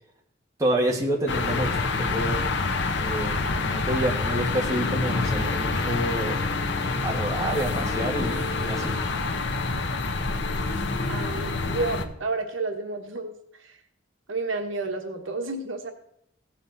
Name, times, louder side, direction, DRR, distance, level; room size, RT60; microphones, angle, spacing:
voice 1, 0.6-1.7 2.0-2.4 3.0-6.4 7.0-8.9, right 1 dB, 15° right, -1 dB, 1.6 m, -28 dB
sound 1, 1.3-12.0, left 3 dB, 60° left, 0.9 m, -27 dB
voice 2, 11.1-13.3 13.6-13.8 14.3-15.9, right 3 dB, 75° right, 5 dB, 1.3 m, -30 dB
16.5 x 7.3 x 4.0 m, 0.72 s
head